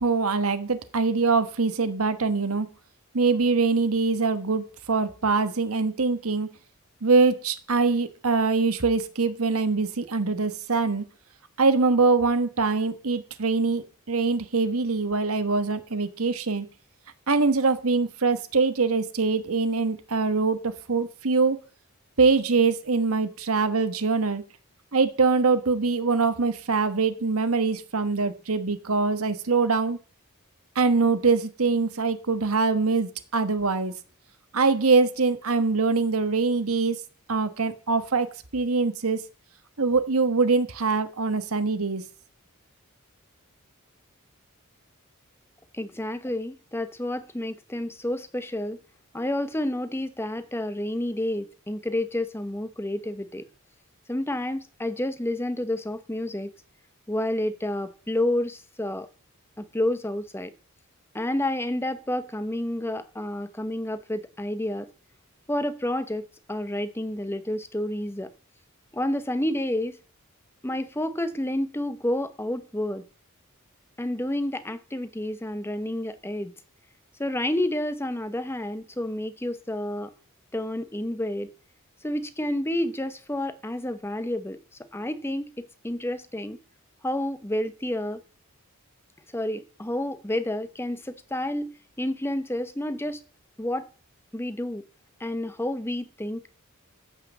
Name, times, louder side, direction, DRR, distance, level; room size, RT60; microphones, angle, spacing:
voice 1, 0.0-2.7 3.1-6.5 7.0-11.0 11.6-16.7 17.3-21.6 22.2-24.4 24.9-30.0 30.7-33.9 34.5-37.0 37.3-39.2 39.8-42.0, right 4 dB, 80° right, 1.3 m, -23 dB
voice 2, 45.7-48.8 49.1-53.4 54.1-56.5 57.1-59.1 59.6-60.5 61.1-64.9 65.5-68.3 68.9-70.0 70.6-73.0 74.0-76.5 77.2-80.1 80.5-81.5 82.0-84.6 84.9-86.6 87.0-88.2 89.3-93.2 93.6-93.9 94.3-94.8 95.2-96.5, left 1 dB, 10° left, 0.9 m, -29 dB
14.0 x 5.8 x 7.2 m
head